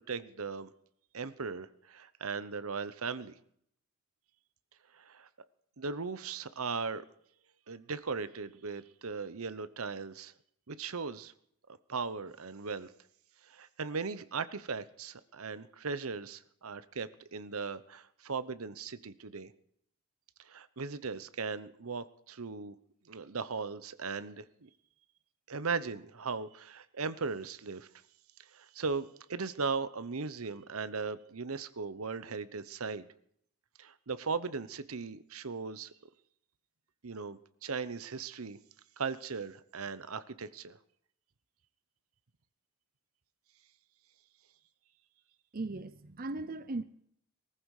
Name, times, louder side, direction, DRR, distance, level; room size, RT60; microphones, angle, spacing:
voice 1, 0.1-0.7 1.1-3.3 4.9-5.3 5.8-7.0 7.7-10.3 10.7-11.3 11.9-12.9 13.4-19.5 20.4-22.7 23.1-24.7 25.5-27.9 28.5-33.1 33.8-35.9 37.0-38.6 39.0-40.8, right 4 dB, 75° right, 14 dB, 0.9 m, -38 dB
voice 2, 45.5-46.8, right 2 dB, 40° right, 13 dB, 0.7 m, -38 dB
18.5 x 14.5 x 4.9 m, 0.67 s
head